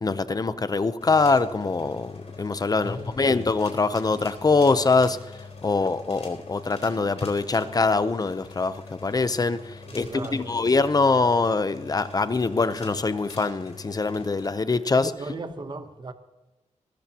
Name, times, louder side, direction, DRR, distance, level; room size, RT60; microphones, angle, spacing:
voice 1, 0.0-5.2 5.6-9.6 9.9-15.1, left 3 dB, 30° left, 0.7 m, -23 dB
sound 1, 1.0-14.5, left 4 dB, 60° left, 4.4 m, -43 dB
voice 2, 2.8-3.3 9.9-10.6 15.1-16.1, right 3 dB, 40° right, 1.0 m, -38 dB
20.5 x 14.0 x 2.9 m
wide cardioid pair, 150°, 12 cm